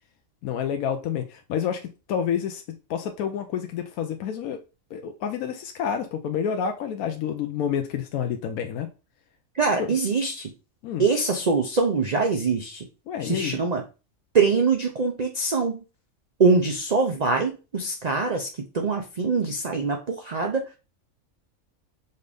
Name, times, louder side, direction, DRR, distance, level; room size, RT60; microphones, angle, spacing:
voice 1, 0.4-2.6 2.9-4.6 4.9-8.9 9.8-9.9 10.8-11.0 13.1-13.6, left 8 dB, 85° left, 1.0 m, -29 dB
voice 2, 9.5-10.5 11.0-12.9 13.2-13.8 14.3-15.8 16.4-20.7, right 4 dB, 55° right, 0.4 m, -23 dB
5.4 x 2.6 x 3.3 m
omnidirectional pair, 1.5 m